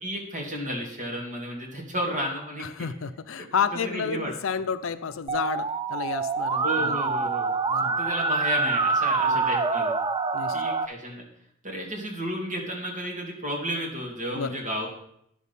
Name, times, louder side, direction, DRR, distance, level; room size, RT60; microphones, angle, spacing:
voice 1, 0.0-2.9 3.4-3.5 3.7-4.3 6.6-7.5 7.8-9.9 10.5-11.3 11.6-14.9, equal, 40° right, -1 dB, 2.5 m, -32 dB
voice 2, 2.6-7.0 7.7-8.1 9.2-9.5 10.3-10.6 14.3-14.6, left 6 dB, 70° left, 11 dB, 0.5 m, -31 dB
Musical instrument, 5.3-10.8, right 4 dB, 20° right, 0.3 m, -26 dB
10.0 x 6.3 x 5.4 m, 0.74 s
head